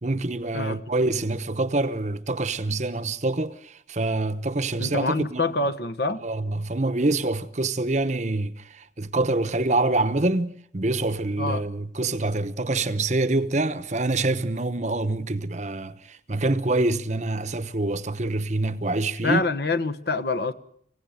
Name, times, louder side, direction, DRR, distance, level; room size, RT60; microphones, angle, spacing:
voice 1, 0.0-5.4 6.2-19.4, right 2 dB, 40° right, 0.9 m, -26 dB
voice 2, 4.8-6.2 11.4-11.6 19.2-20.5, left 3 dB, 55° left, 1.2 m, -26 dB
26.5 x 16.5 x 9.3 m
head